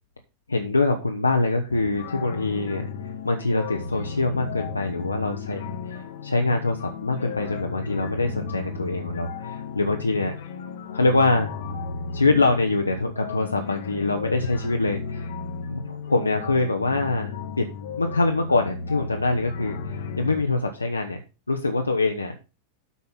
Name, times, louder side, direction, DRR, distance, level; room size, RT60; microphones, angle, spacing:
voice 1, 0.5-10.3 10.9-11.5 12.1-15.3 15.7-17.7 18.0-21.2 21.5-22.3, left 2 dB, 80° left, 4 dB, 1.0 m, -24 dB
sound 1, 1.7-20.4, left 4 dB, 55° left, 1.1 m, -34 dB
8.4 x 5.5 x 6.1 m, 0.31 s
figure-of-eight pair, 90°, 0 cm